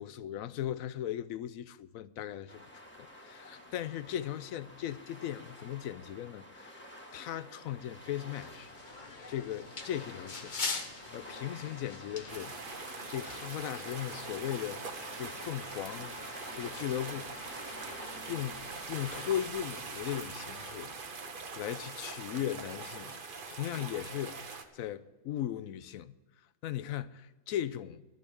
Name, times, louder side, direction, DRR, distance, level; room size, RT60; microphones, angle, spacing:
voice 1, 0.0-2.7 3.0-10.5 11.1-12.6 13.1-17.4 18.3-18.6 18.9-20.9 21.6-24.5 24.7-26.2 26.6-28.0, left 11 dB, 75° left, 1.0 m, -38 dB
sound 1, 2.5-19.5, left 1 dB, 10° left, 1.7 m, -49 dB
sound 2, 8.3-20.8, left 4 dB, 35° left, 1.1 m, -46 dB
sound 3, 12.3-24.6, right 4 dB, 40° right, 1.1 m, -43 dB
13.0 x 6.9 x 9.7 m
omnidirectional pair, 1.5 m